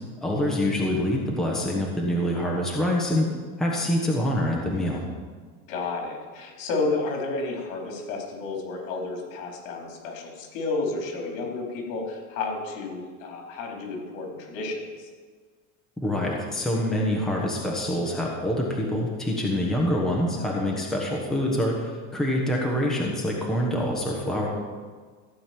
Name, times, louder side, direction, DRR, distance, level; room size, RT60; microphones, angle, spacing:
voice 1, 0.2-3.3 3.6-5.0 16.0-24.5, left 1 dB, ahead, -3 dB, 1.2 m, -25 dB
voice 2, 5.7-15.1, left 3 dB, 80° left, 0 dB, 4.4 m, -31 dB
15.0 x 5.3 x 9.2 m, 1.5 s
cardioid pair, 180°, 39 cm